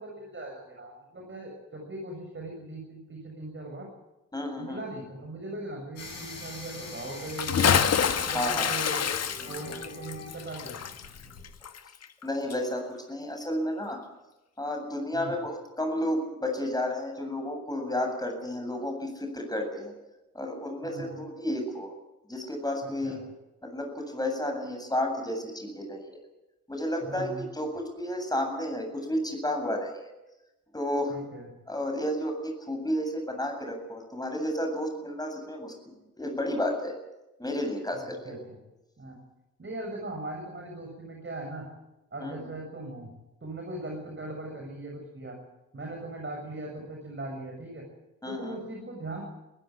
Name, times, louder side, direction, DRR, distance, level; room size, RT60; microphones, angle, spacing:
voice 1, 0.0-3.9 4.6-7.7 8.3-9.1 9.5-10.8 15.1-15.3 20.8-21.2 23.0-23.2 27.0-27.4 31.1-31.5 37.9-38.4 39.0-39.2 39.6-41.7 42.1-43.1 43.4-45.3 45.7-47.8 48.3-49.2, right 2 dB, 30° right, 1 dB, 7.0 m, -39 dB
voice 2, 4.3-4.8 8.3-8.7 12.2-14.0 14.6-19.9 20.3-21.9 22.3-23.2 23.6-26.2 26.7-29.9 30.7-31.1 31.7-35.7 36.2-36.9 37.4-38.4 42.2-42.5 48.2-48.6, left 1 dB, 10° left, 4 dB, 7.8 m, -32 dB
sound 1, 6.0-11.5, left 2 dB, 75° left, 6.5 m, -43 dB
Bathtub (filling or washing) / Splash splatter, 7.3-12.2 12.5-12.6, left 7 dB, 40° left, 1.5 m, -27 dB
24.5 x 15.5 x 8.7 m, 1.0 s
figure-of-eight pair, 45°, 40 cm